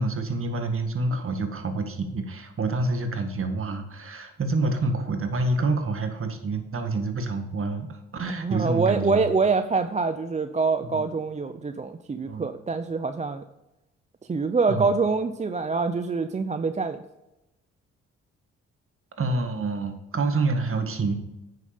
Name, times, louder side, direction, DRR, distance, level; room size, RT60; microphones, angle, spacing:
voice 1, 0.0-9.2 10.9-11.0 12.3-12.5 14.7-15.0 19.2-21.1, right 3 dB, 45° right, 6 dB, 1.7 m, -27 dB
voice 2, 8.3-13.4 14.3-17.0, right 4 dB, 25° right, 9 dB, 0.6 m, -25 dB
9.3 x 6.6 x 5.2 m, 0.96 s
supercardioid pair, 60°, 30 cm